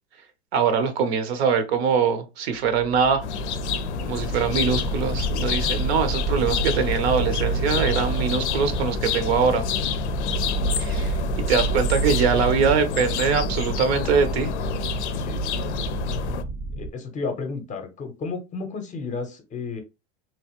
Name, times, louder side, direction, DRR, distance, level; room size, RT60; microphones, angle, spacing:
voice 1, 0.5-3.2 4.0-9.6 10.8-11.2 11.5-14.5, right 6 dB, 70° right, 0.8 m, -23 dB
sound 1, 2.6-16.9, right 4 dB, 20° right, 0.5 m, -29 dB
sound 2, 3.2-16.4, left 9 dB, 85° left, 0.5 m, -29 dB
voice 2, 4.4-4.8 11.6-12.4 15.1-15.5 16.8-19.8, left 4 dB, 20° left, 0.6 m, -33 dB
3.0 x 2.4 x 2.9 m
hypercardioid pair, 115°, 33 cm